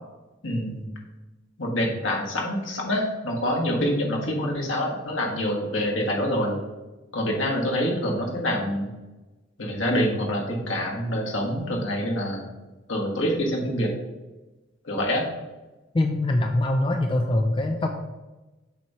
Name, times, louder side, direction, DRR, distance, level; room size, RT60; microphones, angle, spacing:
voice 1, 0.4-0.9 1.6-6.5 7.1-8.9 9.6-12.5 12.9-13.9 14.8-15.3, equal, 70° left, 0 dB, 1.5 m, -26 dB
voice 2, 15.9-17.9, left 1 dB, 25° left, 4 dB, 0.4 m, -23 dB
7.3 x 3.1 x 5.5 m, 1.1 s
head